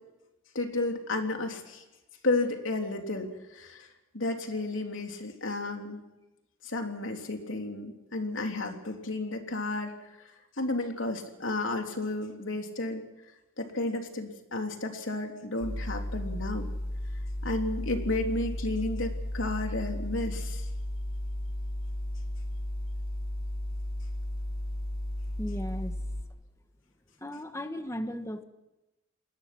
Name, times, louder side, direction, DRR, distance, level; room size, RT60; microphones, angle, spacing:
voice 1, 0.5-1.8 2.2-3.9 4.1-6.0 6.6-9.9 10.2-10.3 10.6-13.0 13.6-16.7 17.4-20.6, left 2 dB, 75° left, 3 dB, 3.4 m, -32 dB
sound 1, 15.6-26.2, left 1 dB, 45° left, 6.5 m, -34 dB
voice 2, 25.4-26.1 27.2-28.4, equal, 15° left, 7 dB, 1.4 m, -36 dB
29.0 x 20.5 x 6.1 m, 1.0 s
head